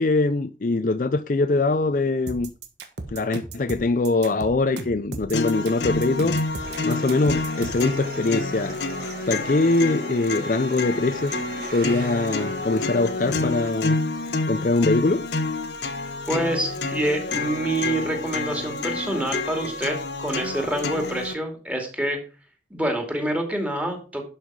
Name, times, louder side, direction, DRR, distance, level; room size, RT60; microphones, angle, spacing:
voice 1, 0.0-2.5 3.1-6.4 6.8-8.8 9.3-11.4 11.7-14.0 14.5-15.3, left 2 dB, 45° left, 0.5 m, -22 dB
sound 1, 2.3-7.9, right 2 dB, 75° right, 1.5 m, -36 dB
sound 2, 5.3-21.3, left 3 dB, 75° left, 1.1 m, -29 dB
sound 3, 6.6-13.7, right 3 dB, 55° right, 2.2 m, -40 dB
voice 2, 16.3-22.2 22.7-24.2, right 1 dB, 10° right, 2.3 m, -27 dB
11.5 x 5.7 x 4.7 m
head